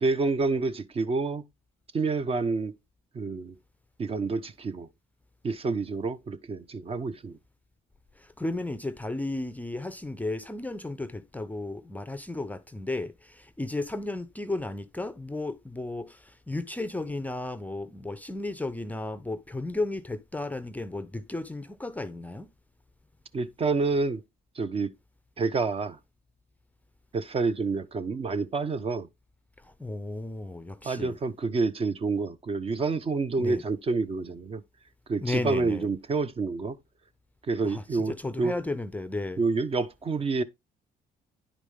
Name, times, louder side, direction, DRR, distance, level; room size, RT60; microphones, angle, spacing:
voice 1, 0.0-1.4 1.9-2.8 3.1-3.6 4.0-4.9 5.4-7.4 23.3-24.2 24.6-24.9 25.4-26.0 27.1-29.1 30.8-34.6 35.1-36.8 37.5-38.6 39.4-40.4, right 4 dB, 35° right, 0.8 m, -28 dB
voice 2, 8.2-22.5 29.6-31.2 33.4-33.6 35.2-35.9 37.6-39.4, left 2 dB, 10° left, 0.5 m, -34 dB
10.0 x 5.0 x 3.6 m
cardioid pair, 110°, 17 cm